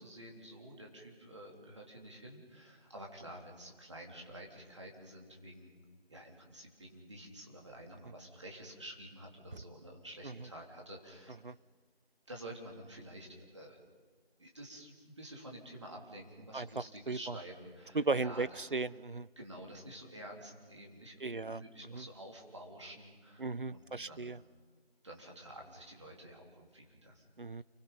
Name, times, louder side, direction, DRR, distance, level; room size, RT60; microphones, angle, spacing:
voice 1, 0.0-5.8 6.1-11.4 12.3-13.8 14.4-18.5 19.4-24.3 25.0-27.3, right 1 dB, 30° right, 0 dB, 3.5 m, -50 dB
voice 2, 16.5-17.3 17.9-19.3 21.2-21.6 21.9-22.0 23.4-24.4 27.4-27.6, right 3 dB, 55° right, 19 dB, 0.6 m, -36 dB
29.5 x 24.0 x 5.5 m, 1.5 s
figure-of-eight pair, 180°, 31 cm